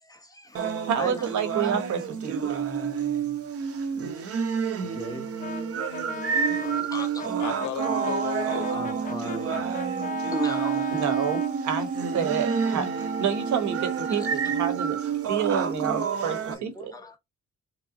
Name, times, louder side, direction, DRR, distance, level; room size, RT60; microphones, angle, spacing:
voice 1, 0.0-0.7 1.0-1.3 4.1-5.3 6.5-7.4 8.7-11.2 12.7-12.8 14.1-14.3 15.1-15.3 16.0-17.2, left 2 dB, 10° left, 1.1 m, -40 dB
sound 1, 0.5-16.5, right 7 dB, 50° right, 0.8 m, -29 dB
voice 2, 0.9-2.6 10.9-11.9 12.1-15.0 15.3-16.9, right 8 dB, 70° right, 1.2 m, -28 dB
Brass instrument, 5.4-11.6, left 7 dB, 30° left, 0.5 m, -38 dB
voice 3, 7.4-9.0, left 9 dB, 70° left, 0.9 m, -35 dB
Wind instrument woodwind instrument, 7.8-15.4, right 5 dB, 25° right, 0.5 m, -33 dB
4.0 x 2.1 x 3.8 m
cardioid pair, 90°, 30 cm